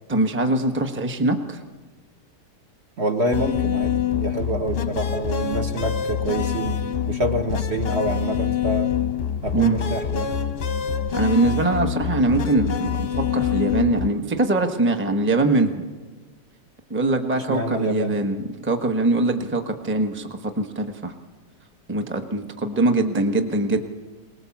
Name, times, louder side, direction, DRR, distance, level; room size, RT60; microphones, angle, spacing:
voice 1, 0.1-1.6 9.5-9.8 11.1-15.9 16.9-21.1 21.9-23.8, right 2 dB, 10° right, 5 dB, 0.9 m, -22 dB
voice 2, 3.0-6.8 7.1-9.0 9.4-10.3 17.3-18.2, right 1 dB, 45° right, 4 dB, 1.3 m, -26 dB
sound 1, 3.3-14.1, left 8 dB, 45° left, 0.9 m, -25 dB
23.0 x 19.5 x 7.3 m, 1.3 s
omnidirectional pair, 1.9 m